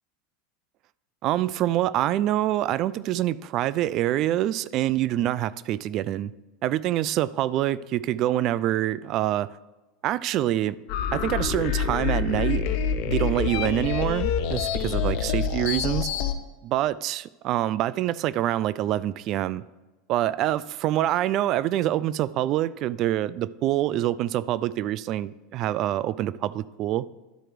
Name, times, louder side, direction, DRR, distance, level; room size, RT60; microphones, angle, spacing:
voice 1, 1.2-6.3 6.6-9.5 10.0-10.8 11.1-12.6 13.0-16.1 16.6-19.6 20.1-27.1, right 13 dB, 50° right, 0.3 m, -26 dB
sound 1, 10.9-16.3, left 7 dB, 60° left, 0.7 m, -26 dB
11.5 x 4.5 x 5.0 m
hypercardioid pair, 100°, 0 cm